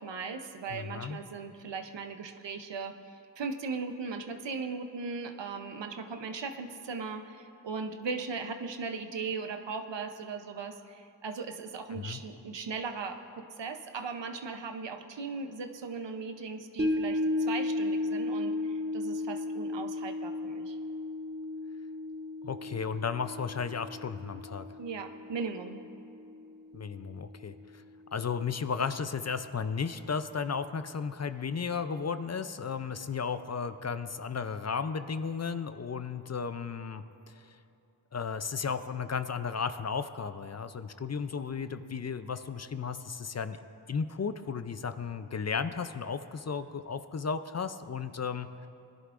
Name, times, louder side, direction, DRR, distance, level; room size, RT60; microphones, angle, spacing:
voice 1, 0.0-3.0 3.4-20.8 24.8-25.8, right 4 dB, 80° right, 7 dB, 0.8 m, -38 dB
voice 2, 0.7-1.2 11.9-12.2 22.4-24.6 26.7-27.6 28.1-37.3 38.1-43.6 43.9-48.5, left 6 dB, 40° left, 11 dB, 0.5 m, -34 dB
sound 1, 16.8-27.2 27.5-27.6, left 2 dB, 25° right, 1.2 m, -34 dB
20.0 x 11.0 x 2.5 m, 2.7 s
cardioid pair, 50°, 43 cm